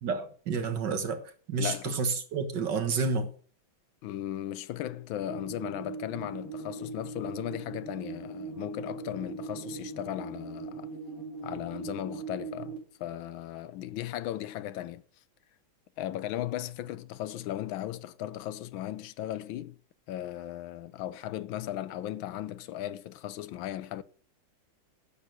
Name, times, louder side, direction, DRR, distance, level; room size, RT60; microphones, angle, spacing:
voice 1, 0.0-1.2 1.5-3.3, right 4 dB, 60° right, 1.9 m, -30 dB
voice 2, 1.6-2.0 4.0-10.9 11.4-15.0 16.0-19.8 20.1-24.0, left 13 dB, 75° left, 1.4 m, -37 dB
sound 1, 5.3-12.8, right 4 dB, 40° right, 3.3 m, -40 dB
10.5 x 6.6 x 6.5 m
omnidirectional pair, 2.3 m